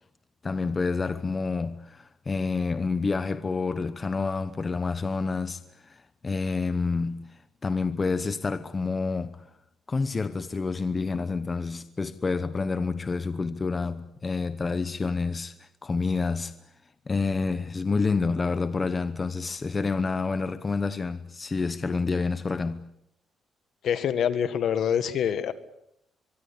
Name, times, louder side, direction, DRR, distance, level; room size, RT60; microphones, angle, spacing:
voice 1, 0.4-9.4 9.9-16.5 17.1-22.8, left 4 dB, 20° left, 0.9 m, -28 dB
voice 2, 23.8-25.5, left 8 dB, 55° left, 1.8 m, -25 dB
24.0 x 23.5 x 8.8 m
cardioid pair, 155°, 0 cm